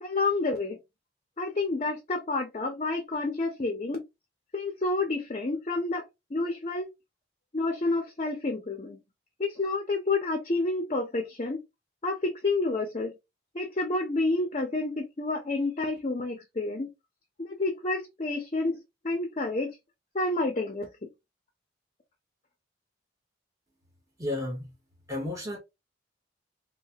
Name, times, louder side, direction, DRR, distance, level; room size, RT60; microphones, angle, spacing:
voice 1, 0.0-0.8 1.4-4.0 4.5-6.0 6.3-6.9 7.5-9.0 9.4-11.6 12.0-13.1 13.5-16.9 17.4-19.8 20.1-20.9, left 3 dB, 35° left, 0.6 m, -29 dB
voice 2, 24.2-24.7 25.1-25.6, left 1 dB, 20° right, 1.1 m, -32 dB
3.2 x 2.1 x 2.7 m
head